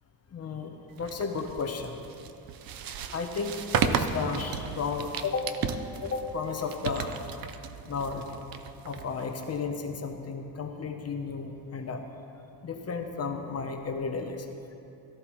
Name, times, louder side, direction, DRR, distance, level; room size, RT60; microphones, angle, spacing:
voice 1, 0.3-2.0 3.1-5.5 6.0-7.1 7.8-8.2 8.8-12.0 12.6-14.5, left 5 dB, 35° left, 4 dB, 0.9 m, -33 dB
sound 1, 1.0-9.6, right 7 dB, 60° right, 0.7 m, -34 dB
18.0 x 13.5 x 3.1 m, 2.8 s
cardioid pair, 175°, 41 cm